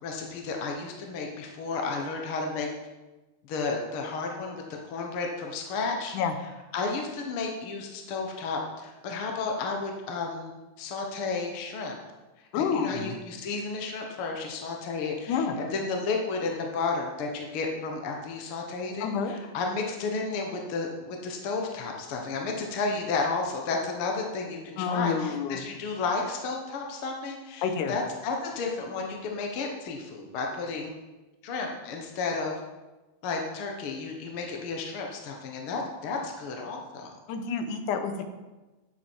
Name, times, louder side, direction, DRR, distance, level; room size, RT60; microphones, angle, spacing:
voice 1, 0.0-2.7 3.4-6.1 6.7-10.5 10.8-12.0 12.4-30.9 31.4-32.6 33.2-37.2, left 4 dB, 60° left, 1 dB, 1.5 m, -32 dB
voice 2, 12.5-13.2 15.3-15.6 19.0-19.4 24.8-25.6 27.6-27.9 37.3-38.3, left 6 dB, 75° left, 7 dB, 2.4 m, -28 dB
11.0 x 7.8 x 4.5 m, 1.1 s
omnidirectional pair, 3.7 m